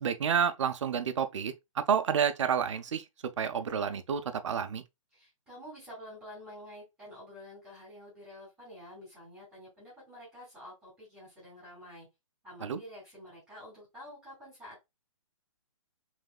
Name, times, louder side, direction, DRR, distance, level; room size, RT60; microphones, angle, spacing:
voice 1, 0.0-3.0 3.4-4.8 12.6-12.8, right 7 dB, 60° right, 0.7 m, -29 dB
voice 2, 5.1-12.1 12.4-14.8, equal, 5° right, 2.8 m, -49 dB
5.3 x 3.5 x 2.3 m
hypercardioid pair, 170°, 18 cm